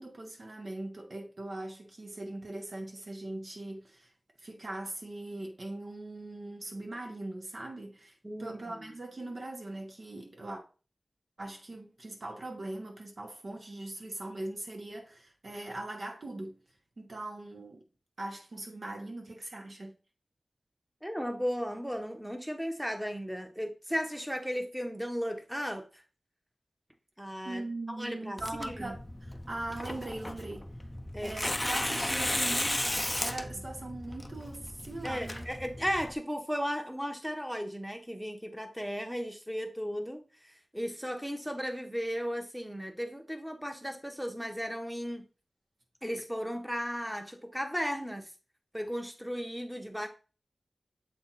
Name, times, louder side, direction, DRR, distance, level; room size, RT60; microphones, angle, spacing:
voice 1, 0.0-4.1 4.4-10.6 11.4-16.6 17.0-17.8 18.2-20.0 27.4-30.7 31.2-35.4, right 2 dB, 55° right, 1.2 m, -41 dB
voice 2, 8.2-8.9 21.0-26.0 27.2-27.6 27.9-29.0 31.1-31.3 35.0-45.2 46.0-48.3 48.7-50.1, equal, ahead, 1.1 m, -35 dB
Tearing, 28.4-36.1, left 1 dB, 15° left, 0.6 m, -35 dB
7.5 x 3.4 x 4.1 m
wide cardioid pair, 85°, 0 cm